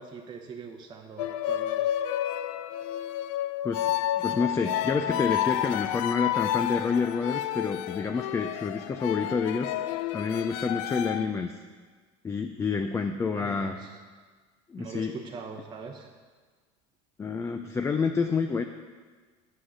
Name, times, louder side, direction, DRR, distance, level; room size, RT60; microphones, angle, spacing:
voice 1, 0.0-2.0 13.4-14.0 14.8-16.1, right 5 dB, 25° right, 1 dB, 0.8 m, -42 dB
sound 1, 1.2-11.3, left 12 dB, 80° left, 0.5 m, -30 dB
voice 2, 4.2-11.5 12.2-13.8 14.7-15.1 17.2-18.6, left 5 dB, 15° left, 5 dB, 0.4 m, -28 dB
8.6 x 7.6 x 6.2 m, 1.5 s
supercardioid pair, 130°, 16 cm